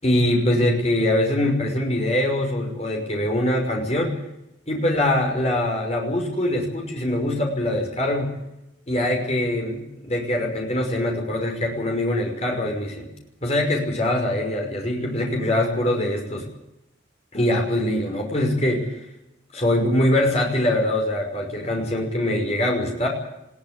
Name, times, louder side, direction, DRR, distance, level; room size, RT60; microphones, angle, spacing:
voice 1, 0.0-4.2 4.7-8.3 8.9-13.1 13.4-16.5 17.3-18.9 19.5-23.1, left 1 dB, 35° left, 1 dB, 5.7 m, -23 dB
21.0 x 17.0 x 9.7 m, 0.87 s
head